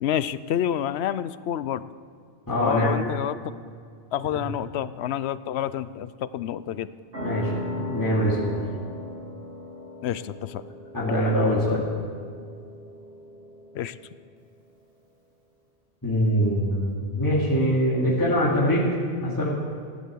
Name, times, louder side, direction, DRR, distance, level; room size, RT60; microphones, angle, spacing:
voice 1, 0.0-1.8 2.6-3.5 4.1-6.9 10.0-10.6 13.7-14.0, left 10 dB, 80° left, 16 dB, 0.8 m, -28 dB
voice 2, 2.5-2.9 4.3-4.4 7.2-8.6 10.9-11.8 16.0-18.9 19.2-19.5, equal, 15° left, -8 dB, 2.6 m, -23 dB
sound 1, 7.1-14.3, left 1 dB, 60° right, 2.1 m, -38 dB
16.0 x 10.0 x 7.7 m, 2.2 s
omnidirectional pair, 1.1 m